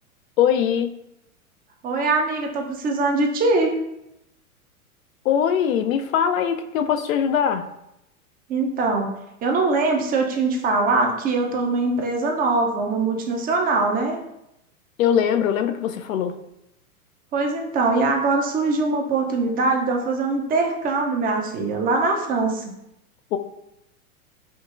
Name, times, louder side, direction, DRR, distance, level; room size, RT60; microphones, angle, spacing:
voice 1, 0.4-1.0 5.2-7.7 15.0-16.4 23.3-23.4, left 8 dB, 65° left, 8 dB, 0.6 m, -21 dB
voice 2, 1.8-3.8 8.5-9.1 9.4-14.2 17.3-22.7, right 3 dB, 20° right, 2 dB, 0.6 m, -22 dB
5.2 x 2.8 x 2.5 m, 0.85 s
hypercardioid pair, 110°, 44 cm